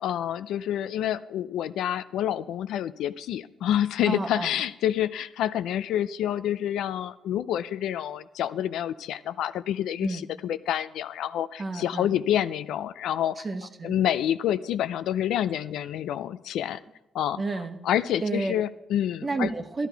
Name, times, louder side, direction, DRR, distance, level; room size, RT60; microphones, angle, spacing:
voice 1, 0.0-13.5 13.8-16.8 17.1-17.4 17.8-19.5, left 11 dB, 80° left, 14 dB, 0.4 m, -28 dB
voice 2, 4.1-4.6 10.0-10.3 11.6-12.1 13.4-14.0 17.4-17.8 18.2-18.5 19.2-19.9, right 3 dB, 30° right, 5 dB, 1.1 m, -30 dB
11.5 x 11.5 x 4.6 m, 0.94 s
cardioid pair, 90°, 0 cm